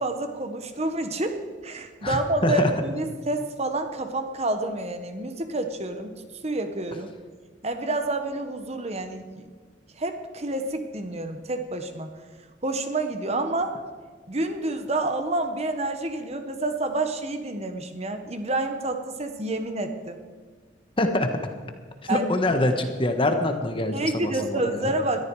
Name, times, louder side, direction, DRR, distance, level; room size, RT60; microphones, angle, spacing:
voice 1, 0.0-6.1 6.4-7.1 7.6-9.5 9.9-12.1 12.6-13.8 14.3-20.2 22.1-22.3 23.9-25.2, right 2 dB, 35° right, 7 dB, 1.2 m, -28 dB
voice 2, 2.0-2.7 21.0-21.3 22.0-24.9, left 1 dB, 25° left, 6 dB, 1.4 m, -25 dB
20.5 x 13.5 x 4.9 m, 1.5 s
head